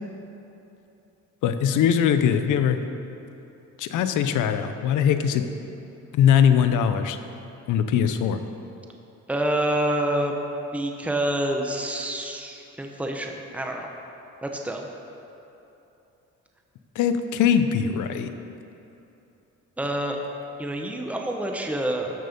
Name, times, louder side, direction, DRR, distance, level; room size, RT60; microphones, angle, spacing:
voice 1, 1.4-2.8 3.8-5.4 6.1-7.2 7.7-8.4 17.0-18.3, left 8 dB, 85° left, 9 dB, 0.7 m, -21 dB
voice 2, 9.3-10.4 10.7-13.9 14.4-14.9 19.8-20.2 20.6-22.1, right 1 dB, 5° right, 2 dB, 1.0 m, -27 dB
13.0 x 6.6 x 5.3 m, 3.0 s
cardioid pair, 90°, 30 cm